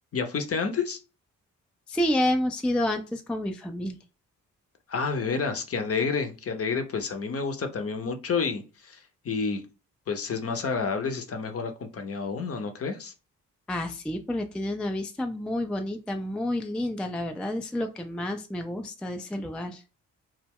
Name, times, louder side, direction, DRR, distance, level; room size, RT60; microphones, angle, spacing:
voice 1, 0.1-1.0 4.9-9.0 9.2-9.6 10.1-13.1, left 5 dB, 40° left, 6 dB, 0.7 m, -29 dB
voice 2, 1.9-4.0 13.7-19.8, left 1 dB, 5° left, 5 dB, 0.3 m, -29 dB
2.2 x 2.1 x 3.4 m, 0.32 s
hypercardioid pair, 45°, 38 cm